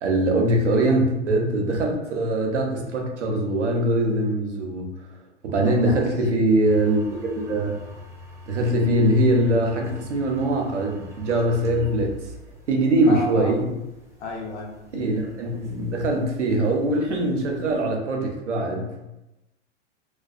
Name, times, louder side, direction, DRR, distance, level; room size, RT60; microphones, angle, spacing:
voice 1, 0.0-4.9 5.4-7.8 8.5-12.1 12.7-13.7 14.9-19.0, right 1 dB, 80° right, 1 dB, 0.7 m, -22 dB
voice 2, 5.6-6.5 13.1-13.5 14.2-15.3, left 3 dB, 70° left, -1 dB, 0.8 m, -33 dB
sound 1, 6.6-17.8, equal, 10° right, 0.5 m, -45 dB
2.3 x 2.2 x 2.5 m, 0.96 s
hypercardioid pair, 105°, 35 cm